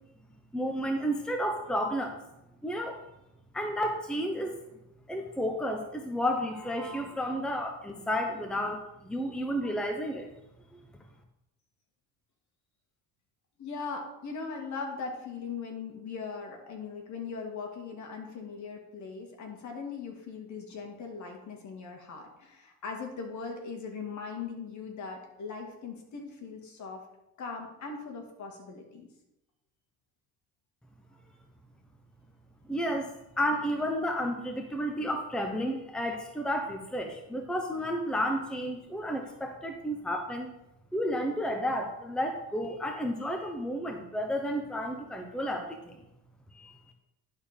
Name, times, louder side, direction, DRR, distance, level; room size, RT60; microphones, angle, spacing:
voice 1, 0.5-2.2 2.6-3.0 3.5-4.6 5.1-10.3 10.7-10.9 32.7-33.1 33.4-40.5 40.9-46.0 46.5-46.7, equal, ahead, 3 dB, 0.9 m, -32 dB
voice 2, 13.6-27.0 27.4-29.1, left 5 dB, 50° left, 2 dB, 2.2 m, -39 dB
11.0 x 4.4 x 5.2 m, 0.90 s
cardioid pair, 105°, 36 cm